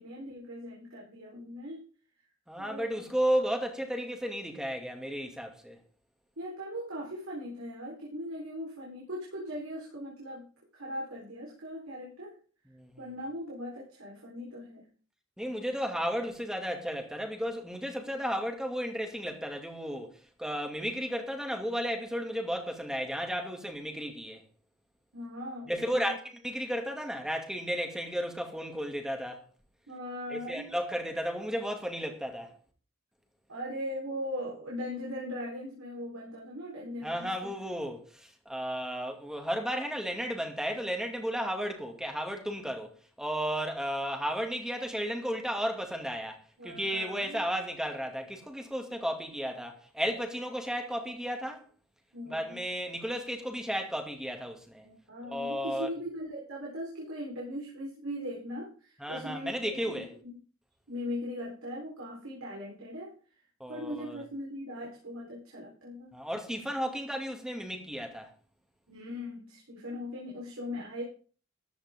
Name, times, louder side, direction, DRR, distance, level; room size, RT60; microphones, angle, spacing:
voice 1, 0.0-1.8 2.6-3.1 6.4-10.5 10.7-12.4 13.0-14.8 25.1-26.1 29.9-30.7 33.5-37.5 46.6-47.4 52.1-52.6 54.8-60.4 60.9-63.1 63.7-66.1 68.9-71.0, equal, 80° right, 4.1 m, -39 dB
voice 2, 2.5-5.8 12.7-13.0 15.4-24.4 25.7-29.4 30.3-32.5 37.0-42.9 43.2-51.6 52.3-54.9 55.2-55.9 59.0-60.1 63.6-64.2 66.1-68.3, equal, 5° right, 2.4 m, -34 dB
14.5 x 11.0 x 3.7 m
head